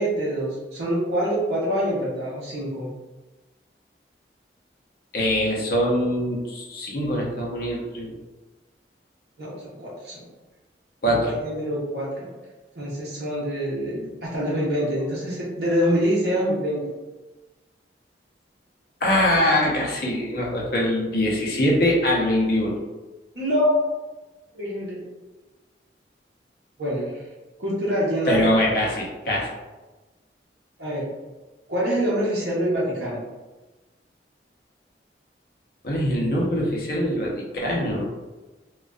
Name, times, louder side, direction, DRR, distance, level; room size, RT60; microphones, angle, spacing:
voice 1, 0.0-2.9 9.4-10.2 11.1-12.3 12.7-16.8 23.3-23.9 24.5-25.1 26.8-27.2 27.6-28.4 30.8-31.0 31.7-33.2, equal, 65° right, -8 dB, 0.7 m, -25 dB
voice 2, 5.1-8.1 11.0-11.3 19.0-22.8 28.3-29.5 35.8-38.1, left 1 dB, 55° left, -3 dB, 0.6 m, -23 dB
2.5 x 2.2 x 2.2 m, 1.2 s
head